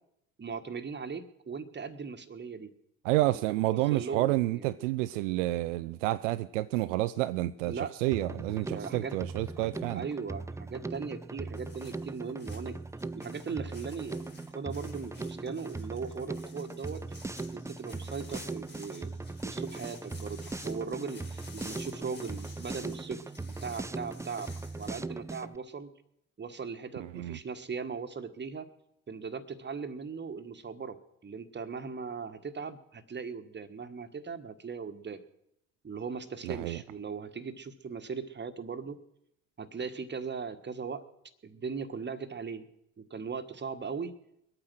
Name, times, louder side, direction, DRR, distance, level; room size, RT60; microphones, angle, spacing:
voice 1, 0.4-2.7 3.3-3.4 3.7-4.7 7.6-9.2 9.9-12.8 13.1-14.2 14.5-17.2 17.5-19.1 19.4-23.2 23.5-25.9 26.4-28.7 29.1-35.2 35.8-39.0 39.6-41.0 41.4-42.7 43.0-44.1, right 5 dB, 25° right, 11 dB, 1.5 m, -39 dB
voice 2, 3.0-10.0 27.0-27.4 36.4-36.8, right 17 dB, 70° right, 13 dB, 0.5 m, -29 dB
Drum kit, 8.1-25.6, right 3 dB, 10° right, 0.5 m, -40 dB
sound 1, 11.5-24.9, left 4 dB, 25° left, 4.5 m, -53 dB
22.5 x 8.9 x 6.3 m, 0.79 s
figure-of-eight pair, 45°, 39 cm